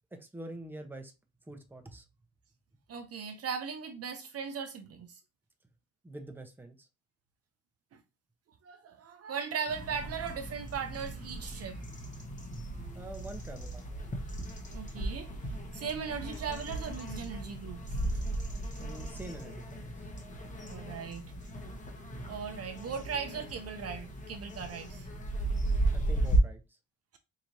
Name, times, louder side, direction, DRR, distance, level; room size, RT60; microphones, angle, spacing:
voice 1, 0.2-1.1 1.5-2.0 6.0-6.9 12.9-14.0 18.8-19.9 25.9-26.8, right 1 dB, 5° right, 0.9 m, -45 dB
voice 2, 2.9-5.2 7.9-8.0 8.6-11.8 14.7-18.0 20.7-21.2 22.3-25.1, right 6 dB, 55° right, 0.6 m, -38 dB
sound 1, 9.7-26.4, right 1 dB, 25° left, 1.1 m, -35 dB
4.7 x 2.8 x 2.7 m
cardioid pair, 90°, 30 cm